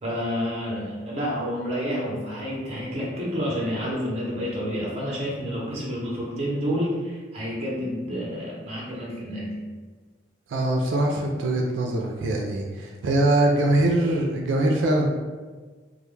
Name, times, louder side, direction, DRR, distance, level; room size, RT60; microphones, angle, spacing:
voice 1, 0.0-9.6, equal, 35° right, -4 dB, 0.6 m, -29 dB
voice 2, 10.5-15.1, right 1 dB, 85° right, 0 dB, 0.3 m, -23 dB
2.2 x 2.0 x 3.1 m, 1.4 s
head